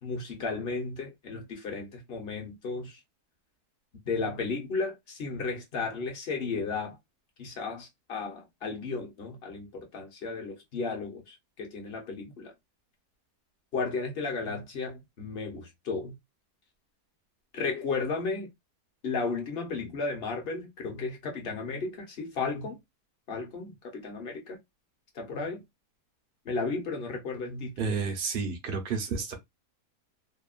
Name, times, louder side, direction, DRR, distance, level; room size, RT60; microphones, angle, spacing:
voice 1, 0.0-3.0 4.0-7.0 7.4-12.5 13.7-16.2 17.5-18.5 19.0-22.8 23.3-24.6 25.1-25.6 26.4-27.9, left 4 dB, 45° left, 1.0 m, -34 dB
voice 2, 27.8-29.4, right 5 dB, 50° right, 0.7 m, -31 dB
2.9 x 2.3 x 2.4 m
omnidirectional pair, 1.6 m